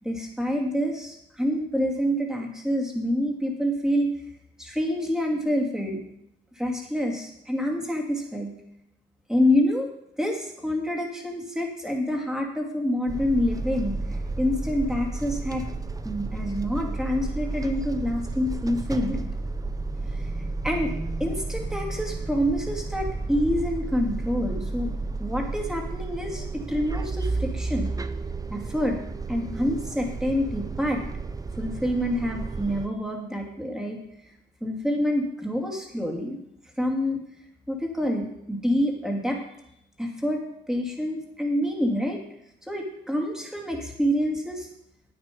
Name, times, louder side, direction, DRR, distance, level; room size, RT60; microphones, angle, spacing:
voice 1, 0.0-4.1 4.6-6.0 6.6-8.5 9.3-9.9 10.2-14.0 14.4-15.6 16.0-19.2 20.2-20.3 20.6-20.9 21.2-24.9 25.2-27.9 28.5-29.0 29.3-31.0 31.6-34.0 34.6-36.4 36.8-37.2 37.7-39.4 40.0-40.4 40.7-42.2 42.7-44.7, equal, 5° right, 0 dB, 2.6 m, -27 dB
sound 1, 13.1-32.9, right 3 dB, 20° right, 0.6 m, -32 dB
9.8 x 8.9 x 5.3 m, 0.79 s
cardioid pair, 90°, 20 cm